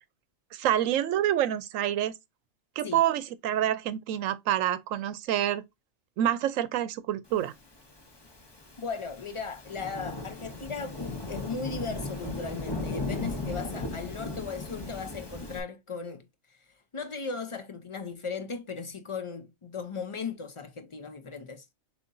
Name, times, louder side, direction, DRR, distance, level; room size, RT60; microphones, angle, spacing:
voice 1, 0.5-2.1 2.8-5.6 6.2-7.5, right 11 dB, 90° right, 1.0 m, -27 dB
Thunderstorm / Rain, 7.9-15.6, left 2 dB, 25° left, 0.8 m, -37 dB
voice 2, 8.8-16.6 16.9-21.7, left 5 dB, 50° left, 0.4 m, -37 dB
6.5 x 2.9 x 2.5 m
omnidirectional pair, 1.3 m